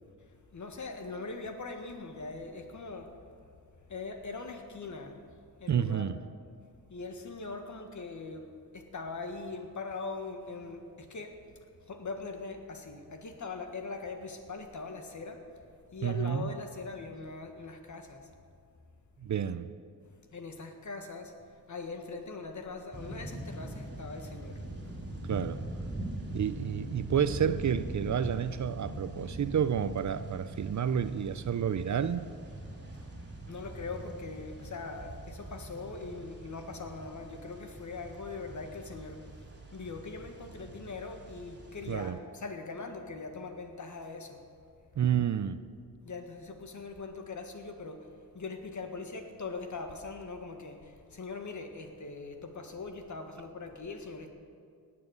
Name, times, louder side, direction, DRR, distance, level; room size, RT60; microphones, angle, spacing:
voice 1, 0.5-3.2 3.9-5.2 5.6-6.1 6.9-8.5 8.7-11.4 11.9-15.4 15.9-18.3 20.0-21.3 21.7-24.6 33.4-39.3 39.7-44.4 46.0-48.1 48.3-54.3, left 3 dB, 50° left, 1.6 m, -41 dB
voice 2, 5.7-6.2 16.0-16.5 19.2-19.7 25.2-25.7 26.3-32.2 41.9-42.2 45.0-45.6, right 8 dB, 50° right, 0.6 m, -30 dB
sound 1, 22.9-42.1, right 1 dB, 25° right, 3.3 m, -42 dB
18.5 x 7.6 x 8.1 m
wide cardioid pair, 110°, 39 cm